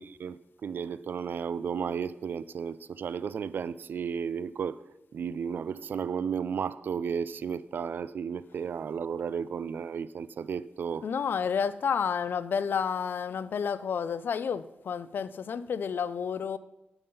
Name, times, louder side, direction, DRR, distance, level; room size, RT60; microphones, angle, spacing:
voice 1, 0.0-4.8 5.1-11.1, right 7 dB, 75° right, 0.4 m, -33 dB
voice 2, 11.0-16.6, left 6 dB, 80° left, 0.4 m, -30 dB
9.5 x 8.9 x 5.4 m
wide cardioid pair, 135°, 3 cm